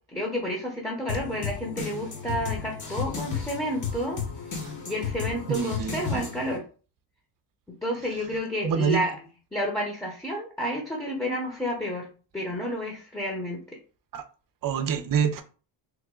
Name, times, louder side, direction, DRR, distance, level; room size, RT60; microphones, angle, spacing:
voice 1, 0.1-4.2 4.9-6.6 7.8-9.2 9.5-12.1 12.3-13.6, equal, 5° left, -1 dB, 1.0 m, -30 dB
sound 1, 1.1-6.6, left 6 dB, 40° left, 1.1 m, -33 dB
voice 2, 5.5-6.3 8.6-9.0 14.1-14.2 14.6-15.4, right 7 dB, 50° right, 9 dB, 0.6 m, -26 dB
3.2 x 2.1 x 3.7 m, 0.37 s
cardioid pair, 75°, 44 cm